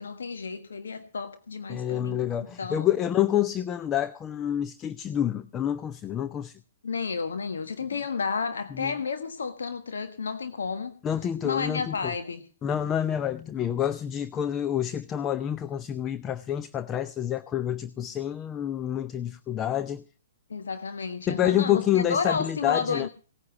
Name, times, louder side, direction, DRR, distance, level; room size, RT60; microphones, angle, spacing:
voice 1, 0.0-2.2 2.6-2.9 6.8-10.9 11.4-12.4 20.5-23.1, left 5 dB, 70° left, 1.4 m, -31 dB
voice 2, 1.7-6.6 8.7-8.9 11.0-12.1 12.6-20.0 21.3-23.1, left 10 dB, 25° left, 0.6 m, -28 dB
18.0 x 9.6 x 6.0 m
figure-of-eight pair, 120°, 0 cm